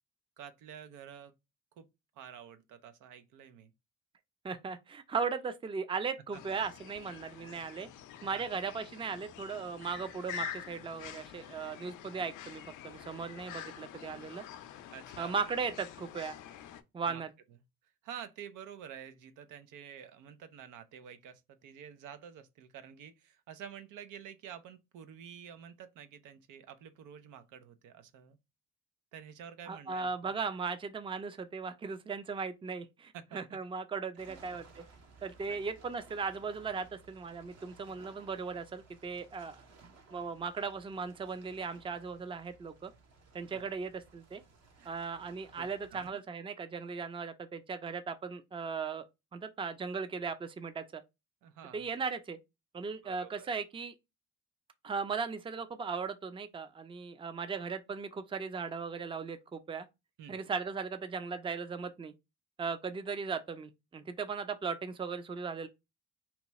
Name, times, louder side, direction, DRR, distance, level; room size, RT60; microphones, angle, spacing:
voice 1, 0.4-1.3 1.8-1.9 2.1-3.7 6.3-6.4 8.3-8.5 14.9-15.4 17.1-17.2 18.0-28.4 29.1-30.3 33.1-33.6 34.2-34.4 35.2-35.6 43.5-43.6 44.8-45.0 45.6-46.2 51.4-51.9 53.0-53.5 60.2-60.4, right 8 dB, 85° right, 0.6 m, -49 dB
voice 2, 4.4-7.9 8.2-14.4 15.2-16.4 16.9-17.3 29.7-34.8 35.2-39.6 40.1-42.9 43.3-44.4 44.8-49.0 49.3-51.0 51.7-52.4 52.7-53.9 54.8-59.9 60.3-62.1 62.6-65.7, right 5 dB, 20° right, 0.4 m, -37 dB
sound 1, 6.3-16.8, left 8 dB, 85° left, 0.5 m, -47 dB
sound 2, 34.2-46.1, right 4 dB, 60° right, 0.9 m, -59 dB
2.9 x 2.3 x 4.0 m
cardioid pair, 90°, 30 cm